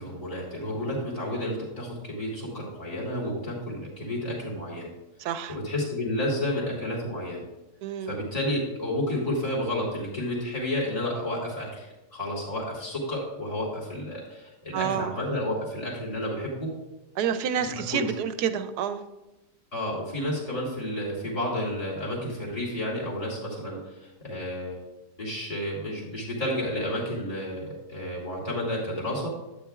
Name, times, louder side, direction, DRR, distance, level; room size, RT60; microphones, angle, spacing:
voice 1, 0.0-4.9 5.5-7.4 8.0-16.7 17.6-18.0 19.7-24.8 25.2-29.3, left 1 dB, 20° left, -6 dB, 2.4 m, -31 dB
voice 2, 5.2-5.6 7.8-8.2 14.7-15.1 17.2-19.0, right 8 dB, 75° right, 10 dB, 1.2 m, -28 dB
11.5 x 9.0 x 2.4 m, 0.99 s
omnidirectional pair, 1.7 m